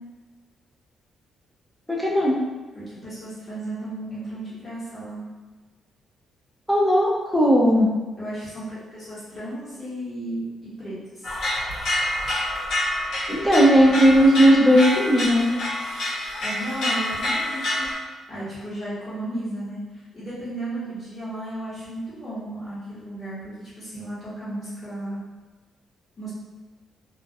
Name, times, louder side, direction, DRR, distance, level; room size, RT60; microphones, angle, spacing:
voice 1, 1.9-2.4 6.7-7.9 13.3-15.5, equal, ahead, -4 dB, 0.4 m, -17 dB
voice 2, 2.7-5.2 8.2-11.4 16.4-17.9 18.3-25.2 26.2-26.3, right 1 dB, 30° left, -11 dB, 1.0 m, -34 dB
sound 1, 11.2-17.9, left 1 dB, 55° left, 1.0 m, -27 dB
2.2 x 2.1 x 2.6 m, 1.2 s
cardioid pair, 140°, 0 cm